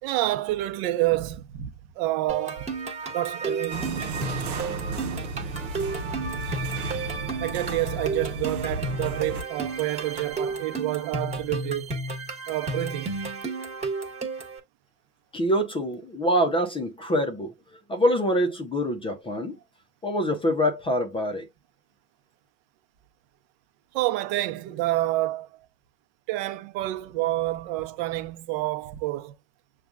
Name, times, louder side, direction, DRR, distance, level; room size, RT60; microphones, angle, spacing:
voice 1, 0.0-1.7 2.0-2.7 3.1-3.9 6.4-6.7 7.4-11.9 12.5-13.2 23.9-25.7 26.3-29.3, right 17 dB, 50° right, 0.9 m, -28 dB
sound 1, 2.3-14.6, right 3 dB, 15° right, 1.3 m, -33 dB
sound 2, 3.7-9.4, right 3 dB, 90° right, 0.9 m, -33 dB
voice 2, 15.3-17.5 17.9-19.5 20.0-21.5, equal, 10° left, 0.6 m, -25 dB
6.9 x 2.4 x 2.3 m
hypercardioid pair, 110°, 43 cm